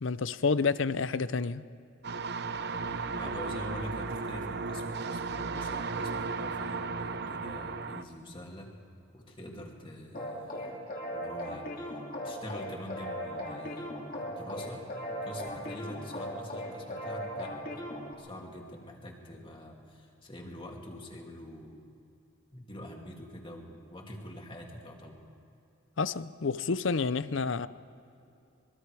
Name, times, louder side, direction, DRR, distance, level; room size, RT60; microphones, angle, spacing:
voice 1, 0.0-1.6 26.0-27.7, left 4 dB, 65° left, 15 dB, 0.6 m, -29 dB
sound 1, 2.0-8.0, right 4 dB, 55° right, 0.7 m, -35 dB
voice 2, 2.8-8.7 9.1-10.8 11.1-17.9 18.2-21.8 22.5-25.2, left 1 dB, 25° left, 0 dB, 2.7 m, -45 dB
sound 2, 10.1-18.1, equal, 45° left, 3.1 m, -38 dB
25.0 x 22.0 x 4.9 m, 2.7 s
head